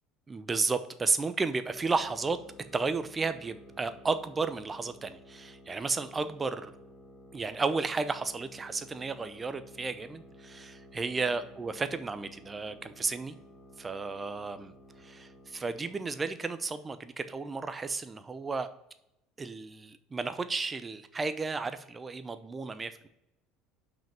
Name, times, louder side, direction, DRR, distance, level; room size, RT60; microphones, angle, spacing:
voice 1, 0.3-2.4 2.7-6.7 7.3-13.3 13.8-14.7 15.0-18.7 19.4-23.1, right 4 dB, 25° right, 12 dB, 0.7 m, -33 dB
sound 1, 1.7-16.2, equal, 20° left, 1.6 m, -54 dB
5.9 x 5.0 x 5.6 m, 0.86 s
hypercardioid pair, 70°, 0 cm